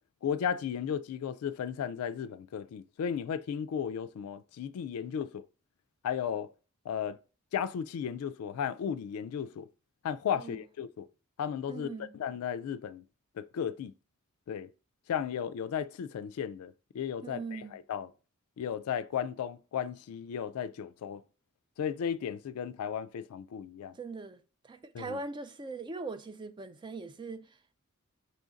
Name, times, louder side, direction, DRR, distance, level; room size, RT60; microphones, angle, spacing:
voice 1, 0.2-5.4 6.0-6.5 6.9-7.2 7.5-9.7 10.0-11.1 11.4-11.9 12.1-13.0 13.4-13.9 14.5-14.7 15.1-18.1 18.6-21.2 21.8-24.0 24.9-25.2, left 8 dB, 80° left, 0.3 m, -35 dB
voice 2, 11.7-12.2 17.2-17.8 23.9-27.6, right 3 dB, 20° right, 0.3 m, -41 dB
5.5 x 2.5 x 3.9 m
head